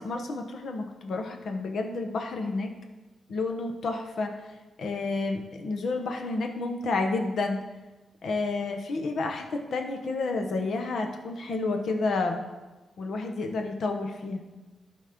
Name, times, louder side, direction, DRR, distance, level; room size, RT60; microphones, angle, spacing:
voice 1, 0.0-2.7 3.3-4.4 4.8-7.6 8.2-12.4 13.0-14.4, left 3 dB, 70° left, 5 dB, 1.0 m, -30 dB
12.0 x 4.2 x 5.2 m, 1.2 s
cardioid pair, 55°, 0 cm